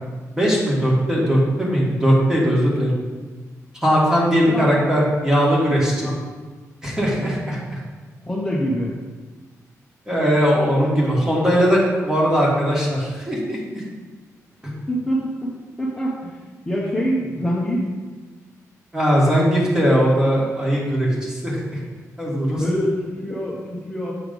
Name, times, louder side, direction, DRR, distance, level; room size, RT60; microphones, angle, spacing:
voice 1, 0.3-2.9 3.8-6.1 6.8-7.8 10.1-13.8 14.6-14.7 18.9-21.8 22.2-22.6, equal, 10° right, -4 dB, 1.4 m, -19 dB
voice 2, 8.3-8.9 14.9-15.5 15.8-17.9 22.5-24.1, equal, 10° left, -5 dB, 0.7 m, -25 dB
7.4 x 3.2 x 5.1 m, 1.3 s
wide cardioid pair, 175°, 6 cm